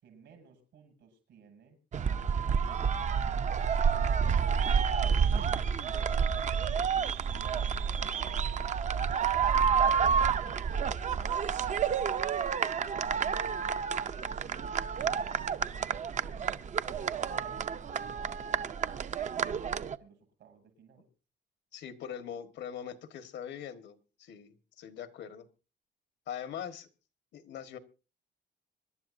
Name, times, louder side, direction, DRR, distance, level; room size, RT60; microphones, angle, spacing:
voice 1, 0.0-1.8 2.3-6.8 7.2-12.4 12.7-13.9 14.3-16.6 17.1-19.7 19.9-21.1, right 6 dB, 85° right, 5 dB, 6.9 m, -57 dB
sound 1, 1.9-20.0, right 6 dB, 40° right, 0.6 m, -29 dB
voice 2, 21.7-25.5 26.3-26.9 27.3-27.8, left 9 dB, 85° left, 10 dB, 1.6 m, -42 dB
25.5 x 12.0 x 2.7 m, 0.32 s
cardioid pair, 150°, 18 cm